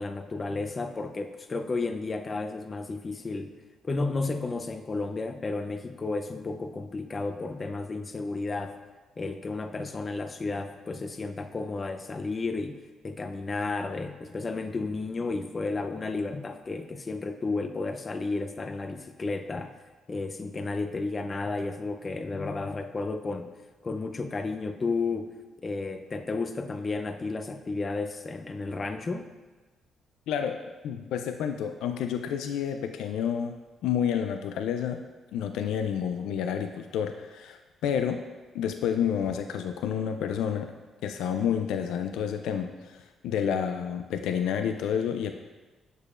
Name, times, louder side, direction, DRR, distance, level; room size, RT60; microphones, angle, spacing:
voice 1, 0.0-3.5 3.8-8.8 9.2-12.8 13.0-19.7 20.1-23.5 23.8-25.3 25.6-29.3, left 3 dB, 30° left, 7 dB, 0.5 m, -32 dB
voice 2, 30.3-35.0 35.3-38.2 38.5-40.7 41.0-45.3, left 8 dB, 90° left, 7 dB, 0.3 m, -29 dB
6.6 x 6.6 x 2.4 m, 1.2 s
cardioid pair, 90°, 0 cm